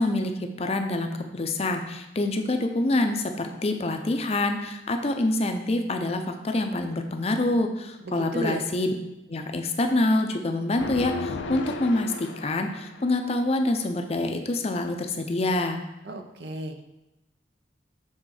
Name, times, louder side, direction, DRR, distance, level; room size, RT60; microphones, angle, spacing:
voice 1, 0.0-8.9 9.3-15.8, left 2 dB, 35° left, 5 dB, 0.5 m, -26 dB
voice 2, 8.0-8.6 16.0-16.8, right 1 dB, 65° right, 5 dB, 0.7 m, -33 dB
sound 1, 10.8-13.1, left 2 dB, 90° left, 0.5 m, -34 dB
7.5 x 3.7 x 4.8 m, 0.94 s
head